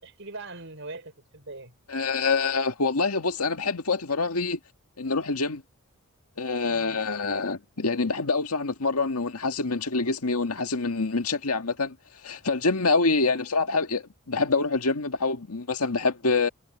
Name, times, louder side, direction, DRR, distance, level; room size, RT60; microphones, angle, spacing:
voice 1, 0.0-1.7 6.6-7.0 13.2-13.4, right 3 dB, 55° right, 5.6 m, -42 dB
voice 2, 1.9-4.6 5.0-5.6 6.4-12.0 12.2-16.5, left 3 dB, 85° left, 1.8 m, -26 dB
head